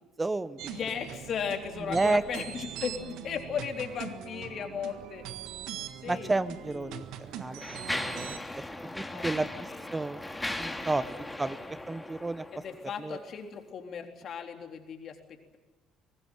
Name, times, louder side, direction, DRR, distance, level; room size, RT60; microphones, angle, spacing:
voice 1, 0.2-0.7 1.9-2.2 6.1-7.1 7.3-10.2 10.6-11.6 11.9-12.4 13.0-13.2, right 2 dB, 20° right, 16 dB, 0.9 m, -31 dB
sound 1, 0.6-8.4, right 10 dB, 70° right, 1.6 m, -42 dB
voice 2, 0.7-5.2 6.0-6.3 6.7-7.0 9.1-9.8 11.0-11.3 12.5-15.6, left 7 dB, 55° left, 5 dB, 3.7 m, -37 dB
Mechanisms, 6.2-6.4 7.1-12.9, left 1 dB, 10° left, 2.5 m, -38 dB
24.0 x 19.5 x 9.4 m, 1.2 s
hypercardioid pair, 60°, 0 cm